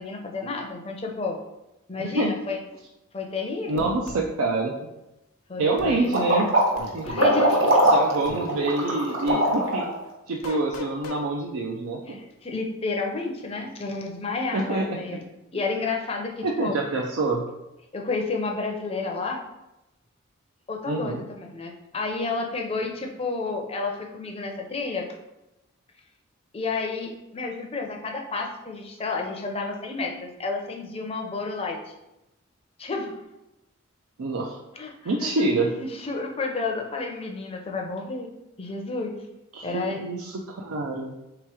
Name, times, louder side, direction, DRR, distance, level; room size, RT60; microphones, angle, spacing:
voice 1, 0.0-1.4 1.9-2.6 3.1-3.9 5.5-6.1 7.0-7.8 10.5-10.6 12.1-15.2 15.5-16.7 17.9-19.4 20.7-25.1 26.5-31.8 32.8-33.2 34.8-35.4 35.8-38.3 38.6-39.2 39.6-40.0, left 3 dB, 25° left, 2 dB, 0.5 m, -31 dB
voice 2, 2.0-2.3 3.7-4.7 5.6-6.5 6.9-7.1 7.9-9.9 10.3-12.2 14.5-14.9 16.4-17.5 20.8-21.2 34.2-34.6 35.0-35.7 39.5-41.1, right 2 dB, 85° right, -1 dB, 0.5 m, -26 dB
sound 1, 3.8-4.2 5.8-6.0 6.8-7.3 8.2-8.4 9.3-9.5 10.4-11.2, left 2 dB, 85° left, 0.6 m, -38 dB
sound 2, 6.1-10.0, right 1 dB, 65° right, 1.0 m, -21 dB
3.6 x 3.0 x 4.7 m, 0.94 s
head